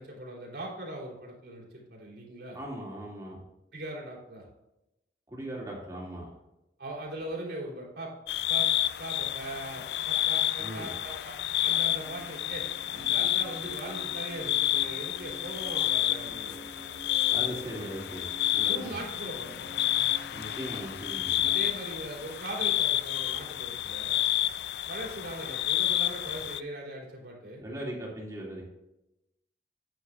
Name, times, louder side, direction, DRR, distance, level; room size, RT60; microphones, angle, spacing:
voice 1, 0.0-2.6 3.7-4.5 6.8-8.1 8.5-8.7 9.0-11.4 11.6-16.6 18.6-19.7 21.4-24.2 24.9-27.6, right 1 dB, 75° right, -3 dB, 3.4 m, -40 dB
voice 2, 2.5-3.4 5.3-6.3 10.6-11.0 17.3-18.3 18.5-18.9 20.3-21.5 27.6-28.6, right 1 dB, 20° right, -4 dB, 2.4 m, -39 dB
sound 1, 8.3-26.6, left 13 dB, 70° left, 0.3 m, -30 dB
sound 2, 10.9-22.3, right 1 dB, 30° left, 1.0 m, -49 dB
9.5 x 9.1 x 2.5 m, 0.91 s
head